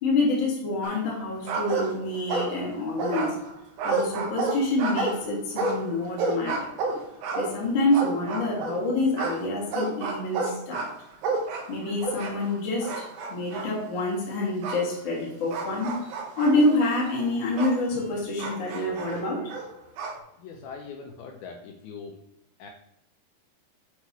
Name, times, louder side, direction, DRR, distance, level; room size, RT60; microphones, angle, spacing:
voice 1, 0.0-3.3 3.8-6.6 7.3-10.9 11.7-19.5, left 2 dB, 65° left, -3 dB, 1.2 m, -27 dB
sound 1, 0.8-1.2 1.5-2.7 3.0-8.8 9.2-12.5 12.8-13.7 14.6-14.8 15.5-17.8 18.4-20.2, right 3 dB, 75° right, 3.3 m, -30 dB
voice 2, 20.4-22.2 22.6-22.7, left 5 dB, 85° left, 3 dB, 2.2 m, -41 dB
8.0 x 5.6 x 3.0 m, 0.82 s
omnidirectional pair, 4.9 m